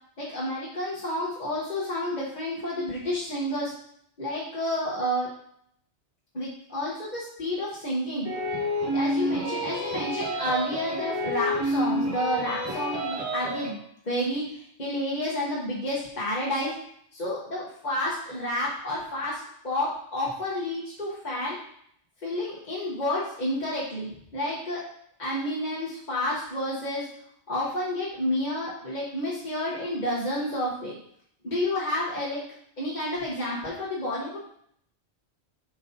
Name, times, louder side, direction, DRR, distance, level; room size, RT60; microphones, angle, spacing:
voice 1, 0.2-3.7 4.2-5.3 6.3-8.3 8.9-16.7 17.1-21.6 22.2-24.8 25.2-27.1 27.5-31.0 31.4-32.4 32.8-34.4, left 1 dB, 40° left, -8 dB, 1.4 m, -30 dB
sound 1, 8.2-13.7, equal, 20° right, 2.6 m, -29 dB
7.4 x 4.8 x 2.8 m, 0.69 s
omnidirectional pair, 1.2 m